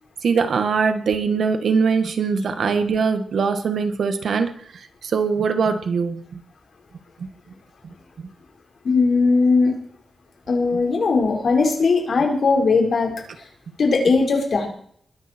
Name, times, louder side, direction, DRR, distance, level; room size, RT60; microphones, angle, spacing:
voice 1, 0.2-4.6 5.0-6.4 8.2-8.3 10.7-10.8, right 5 dB, 80° right, 8 dB, 1.7 m, -22 dB
voice 2, 8.8-9.7 10.5-13.1 13.8-14.7, left 4 dB, 65° left, 1 dB, 4.7 m, -18 dB
21.5 x 11.0 x 4.5 m, 0.63 s
wide cardioid pair, 120°, 0 cm